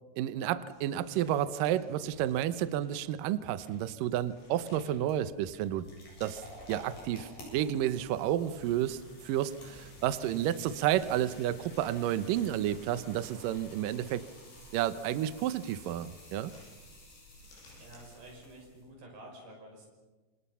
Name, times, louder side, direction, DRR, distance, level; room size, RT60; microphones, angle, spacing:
voice 1, 0.2-5.9 6.2-6.4 6.7-14.2 14.7-16.5, right 11 dB, 90° right, 13 dB, 1.9 m, -31 dB
sound 1, 0.7-18.7, left 2 dB, 70° left, 10.0 m, -61 dB
sound 2, 4.1-18.9, left 1 dB, 50° left, 9.2 m, -52 dB
voice 2, 17.8-19.9, right 1 dB, 55° right, 1 dB, 7.8 m, -50 dB
28.5 x 26.5 x 5.7 m, 1.3 s
omnidirectional pair, 5.2 m